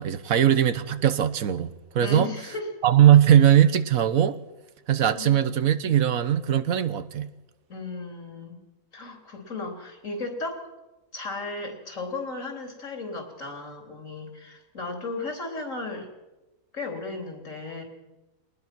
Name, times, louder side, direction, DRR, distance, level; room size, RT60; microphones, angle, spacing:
voice 1, 0.0-1.7 1.9-2.3 2.8-4.4 4.9-7.3, right 10 dB, 70° right, 13 dB, 1.3 m, -20 dB
voice 2, 2.0-2.7 5.1-5.4 7.7-8.6 8.9-10.7 11.1-16.1 16.7-17.8, left 3 dB, 60° left, 3 dB, 3.9 m, -35 dB
22.5 x 19.5 x 6.0 m, 1.1 s
omnidirectional pair, 1.5 m